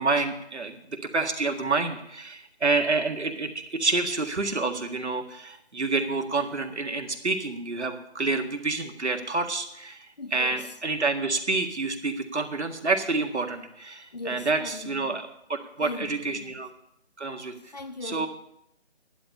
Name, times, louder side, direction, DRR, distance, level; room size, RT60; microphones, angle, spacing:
voice 1, 0.0-10.1 10.3-16.7 17.2-17.5 18.0-18.3, right 3 dB, 80° right, 1.9 m, -28 dB
voice 2, 10.2-10.7 14.1-15.2 15.8-16.5 17.6-18.3, left 3 dB, 40° left, 0.7 m, -39 dB
11.5 x 11.5 x 5.4 m
figure-of-eight pair, 165°, 34 cm